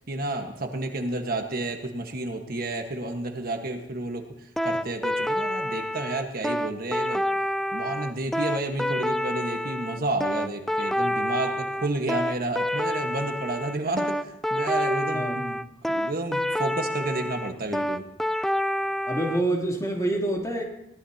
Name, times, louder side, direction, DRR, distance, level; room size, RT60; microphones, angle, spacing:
voice 1, 0.1-4.3 4.6-7.2 7.7-15.6 15.9-18.0, right 2 dB, 50° right, 4 dB, 1.4 m, -31 dB
sound 1, 4.6-19.4, left 1 dB, ahead, 0.4 m, -28 dB
voice 2, 19.1-20.6, right 1 dB, 20° left, -1 dB, 3.0 m, -26 dB
21.0 x 17.5 x 2.8 m, 0.81 s
head